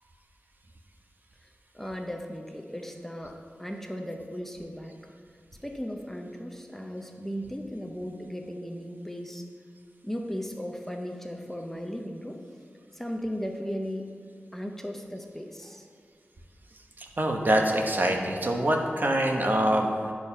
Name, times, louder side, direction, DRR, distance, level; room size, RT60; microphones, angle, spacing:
voice 1, 1.7-5.0 5.6-9.4 10.0-12.4 12.9-14.1 14.5-15.9, equal, 10° left, 3 dB, 0.7 m, -36 dB
voice 2, 17.0-20.1, right 1 dB, 50° right, 2 dB, 1.0 m, -25 dB
10.5 x 4.7 x 5.7 m, 2.1 s
wide cardioid pair, 80°, 4 cm